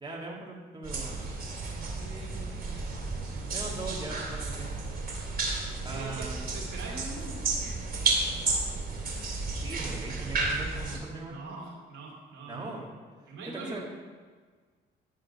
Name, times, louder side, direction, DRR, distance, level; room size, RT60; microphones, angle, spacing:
voice 1, 0.0-1.3 3.5-4.7 5.8-6.5 9.5-11.4 12.5-12.9 13.5-13.8, right 2 dB, 20° right, -3 dB, 1.8 m, -40 dB
sound 1, 0.8-11.0, right 3 dB, 50° right, 2.6 m, -32 dB
voice 2, 1.9-3.8 5.8-7.6 11.2-12.7 13.3-13.8, right 3 dB, 90° right, -3 dB, 2.7 m, -44 dB
11.0 x 3.8 x 6.8 m, 1.5 s
cardioid pair, 90°, 20 cm